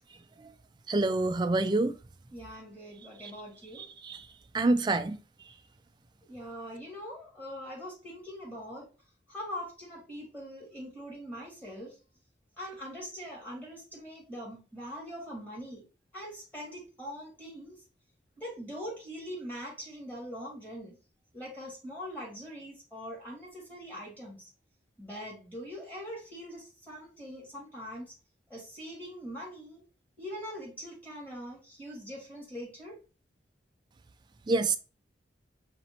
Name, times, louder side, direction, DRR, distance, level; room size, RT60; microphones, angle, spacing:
voice 1, 0.9-1.9 4.0-4.2 4.5-5.2 34.5-34.8, right 2 dB, 25° right, 0.3 m, -26 dB
voice 2, 2.3-3.9 6.3-8.9 9.3-12.0 12.6-15.8 16.1-17.7 18.4-21.0 21.3-24.5 25.0-28.1 28.5-29.8 30.2-33.0, equal, 10° left, 1.8 m, -42 dB
5.1 x 3.0 x 2.8 m
head